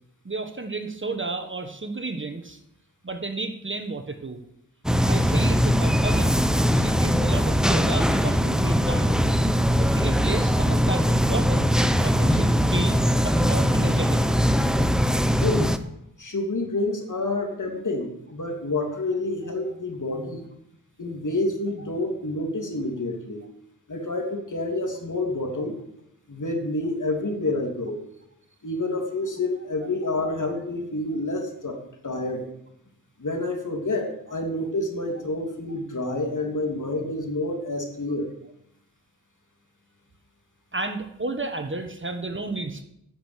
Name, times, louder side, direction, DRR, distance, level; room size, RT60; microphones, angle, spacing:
voice 1, 0.2-2.6 3.0-4.4 5.1-6.4 6.7-9.5 9.8-11.7 12.0-14.2 40.7-42.8, right 3 dB, 30° right, 7 dB, 1.5 m, -32 dB
sound 1, 4.8-15.8, equal, ahead, 0.9 m, -21 dB
voice 2, 15.4-15.7 16.2-20.4 21.0-23.4 23.9-25.8 26.3-28.0 28.6-32.4 33.2-38.3, left 2 dB, 50° left, 2 dB, 2.9 m, -28 dB
11.0 x 6.7 x 8.3 m, 0.80 s
cardioid pair, 45°, 38 cm